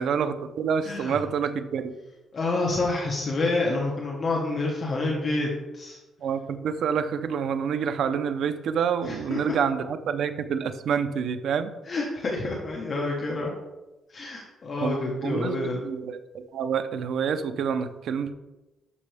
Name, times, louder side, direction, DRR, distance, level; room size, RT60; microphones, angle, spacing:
voice 1, 0.0-1.9 6.2-11.7 14.8-18.3, right 7 dB, 65° right, 9 dB, 0.7 m, -28 dB
voice 2, 0.8-1.2 2.3-6.0 9.0-9.5 11.8-13.5 14.1-15.8, left 2 dB, 35° left, -2 dB, 1.5 m, -28 dB
12.0 x 6.1 x 3.5 m, 1.0 s
cardioid pair, 140°, 0 cm